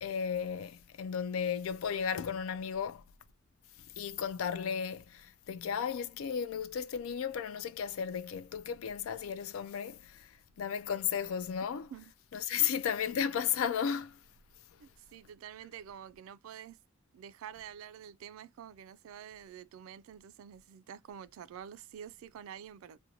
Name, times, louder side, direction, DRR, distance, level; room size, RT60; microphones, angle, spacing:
voice 1, 0.0-3.0 4.0-11.9 12.3-14.2, left 7 dB, 80° left, 0.4 m, -34 dB
voice 2, 14.8-16.8 17.1-23.0, right 8 dB, 85° right, 0.3 m, -48 dB
2.6 x 2.2 x 2.8 m
head